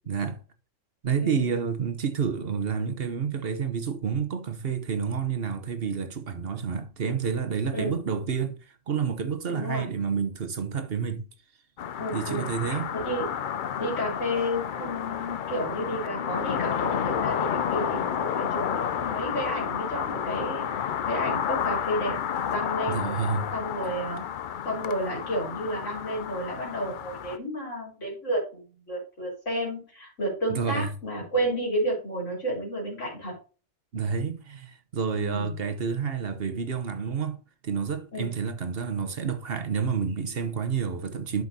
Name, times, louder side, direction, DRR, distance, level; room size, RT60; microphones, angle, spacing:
voice 1, 0.1-0.4 1.0-8.6 8.9-11.2 12.1-12.9 22.9-23.5 30.5-30.9 33.9-37.4 37.6-41.4, right 6 dB, 55° right, 1.1 m, -29 dB
voice 2, 1.2-1.6 7.7-8.0 9.5-9.9 12.0-13.3 13.8-22.2 22.5-23.0 23.5-24.2 24.6-33.3 35.2-35.5 38.1-38.3, equal, 90° left, 4.0 m, -31 dB
sound 1, 11.8-27.4, left 8 dB, 55° left, 0.6 m, -31 dB
11.5 x 5.5 x 2.7 m
omnidirectional pair, 1.2 m